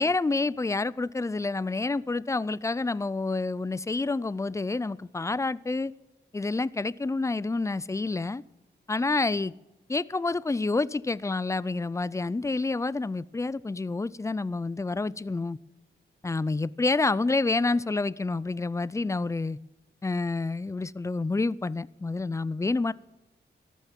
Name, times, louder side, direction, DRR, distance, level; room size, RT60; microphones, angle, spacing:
voice 1, 0.0-5.9 6.3-8.4 8.9-9.5 9.9-15.6 16.2-19.6 20.0-22.9, left 3 dB, 15° left, 0.4 m, -28 dB
13.5 x 9.3 x 7.3 m
cardioid pair, 80°, 20 cm